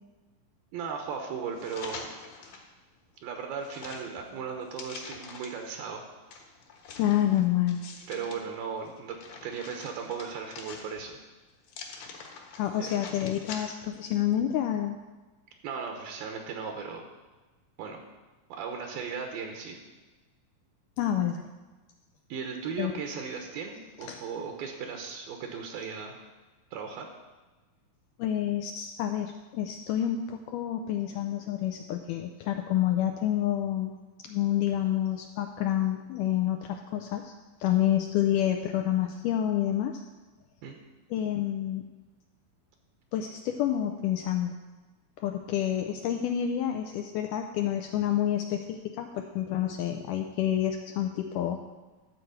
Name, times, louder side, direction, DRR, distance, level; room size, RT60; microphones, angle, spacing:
voice 1, 0.7-2.1 2.5-2.6 3.2-6.1 8.1-9.2 9.4-11.2 12.8-12.9 15.6-17.1 17.8-18.0 18.5-19.8 22.3-26.2 26.7-27.1 40.6-40.8, right 6 dB, 80° right, 3 dB, 2.8 m, -37 dB
sound 1, 1.6-2.7 3.1-5.7 6.3-8.4 8.9-11.2 11.6-14.0 14.3-14.4, left 4 dB, 70° left, 2.9 m, -45 dB
voice 2, 7.0-7.8 12.6-15.0 21.0-21.4 22.8-23.0 24.1-24.2 28.2-37.3 37.6-40.0 41.1-41.9 43.1-44.5 45.2-51.6, left 11 dB, 85° left, 5 dB, 1.9 m, -28 dB
12.5 x 4.6 x 7.8 m, 1.2 s
omnidirectional pair, 4.2 m